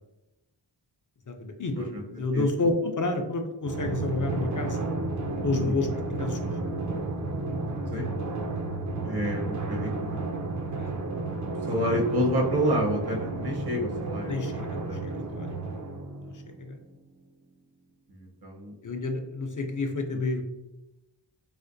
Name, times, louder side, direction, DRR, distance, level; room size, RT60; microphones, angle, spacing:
voice 1, 1.3-4.9 5.4-6.5 10.8-10.9 14.3-15.5 16.2-16.3 16.6-16.8 18.8-20.4, left 3 dB, 45° left, 4 dB, 0.5 m, -30 dB
Drum, 3.6-16.7, right 2 dB, 40° right, 0.5 m, -32 dB
voice 2, 9.0-10.2 11.7-14.5 14.9-15.2 18.1-18.7, equal, 55° right, 1 dB, 0.9 m, -29 dB
4.2 x 2.1 x 2.5 m, 0.99 s
wide cardioid pair, 50°, 45 cm